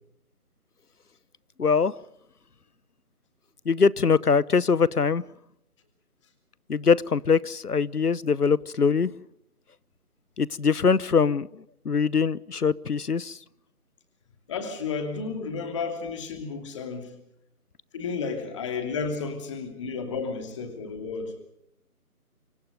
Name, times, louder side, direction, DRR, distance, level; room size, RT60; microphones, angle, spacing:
voice 1, 1.6-1.9 3.7-5.2 6.7-9.1 10.4-13.4, left 5 dB, 90° left, 1.0 m, -23 dB
voice 2, 14.5-17.2 17.9-21.3, left 5 dB, 20° left, 2.8 m, -32 dB
26.5 x 23.5 x 5.2 m
figure-of-eight pair, 160°, 45 cm